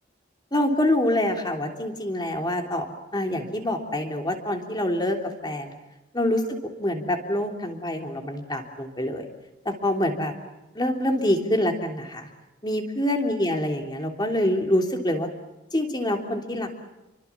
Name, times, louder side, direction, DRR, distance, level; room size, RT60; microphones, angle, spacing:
voice 1, 0.5-2.9 3.1-5.2 5.4-5.7 6.1-6.4 6.8-9.3 9.6-10.3 10.7-12.3 12.6-15.3 15.7-16.8, left 1 dB, 20° left, 3 dB, 3.3 m, -25 dB
29.5 x 24.0 x 7.3 m, 0.99 s
head